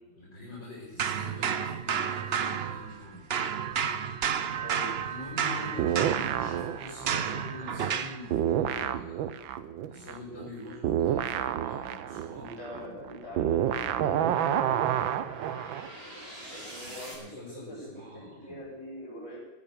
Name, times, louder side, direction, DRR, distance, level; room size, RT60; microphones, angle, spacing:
voice 1, 0.1-3.3 5.0-9.4 9.9-12.6 16.8-18.6, left 1 dB, 65° left, -5 dB, 5.6 m, -44 dB
sound 1, 1.0-3.0 3.3-8.2, right 7 dB, 60° right, 0.6 m, -31 dB
sound 2, 3.2-17.1, right 1 dB, 30° right, 5.8 m, -50 dB
voice 2, 4.5-4.9 12.3-14.7 16.4-19.4, equal, 40° left, -3 dB, 8.0 m, -43 dB
sound 3, 5.8-8.0 8.3-15.9, right 10 dB, 90° right, 1.6 m, -29 dB
17.0 x 12.0 x 6.9 m, 1.0 s
omnidirectional pair, 2.1 m